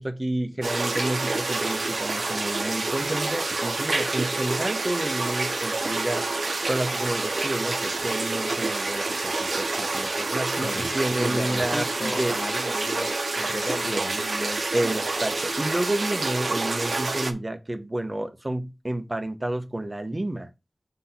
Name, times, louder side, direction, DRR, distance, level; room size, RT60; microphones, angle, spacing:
voice 1, 0.0-6.2 6.7-12.3 14.7-20.5, right 1 dB, 30° right, 0.8 m, -30 dB
sound 1, 0.6-17.3, right 3 dB, 75° right, 0.7 m, -28 dB
voice 2, 10.6-14.8, left 2 dB, 55° left, 0.9 m, -35 dB
6.1 x 2.9 x 5.5 m
wide cardioid pair, 55°, 0 cm